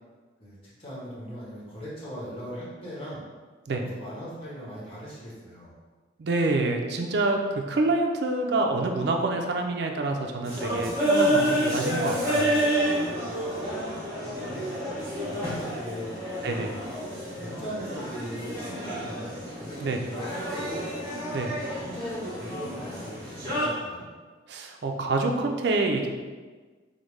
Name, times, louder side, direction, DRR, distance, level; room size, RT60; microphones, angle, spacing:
voice 1, 0.4-3.2 3.8-5.7 10.7-10.9 11.8-12.4 13.0-13.8 14.2-14.7 15.0-16.6 17.4-20.9 21.8-24.1, equal, 30° left, -8 dB, 1.0 m, -39 dB
voice 2, 6.2-12.5 16.4-16.7 19.8-20.0 21.3-21.5 24.5-26.1, right 2 dB, 60° right, 3 dB, 0.4 m, -27 dB
sound 1, 10.4-23.7, right 1 dB, 15° right, 1.3 m, -29 dB
5.0 x 2.1 x 3.1 m, 1.4 s
head